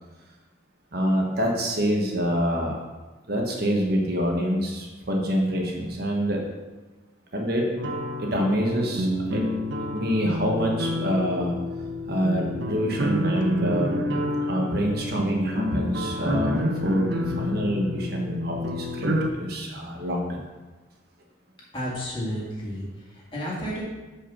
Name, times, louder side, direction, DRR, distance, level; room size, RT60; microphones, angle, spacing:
voice 1, 0.9-2.8 3.3-6.4 7.3-7.6 8.2-9.4 9.9-11.5 12.0-14.0 14.5-19.1 19.4-20.4, equal, 55° right, 0 dB, 1.3 m, -26 dB
sound 1, 7.8-19.3, left 1 dB, 70° right, 0.8 m, -29 dB
voice 2, 21.7-23.8, equal, 25° left, -5 dB, 2.1 m, -32 dB
6.6 x 5.2 x 5.6 m, 1.3 s
head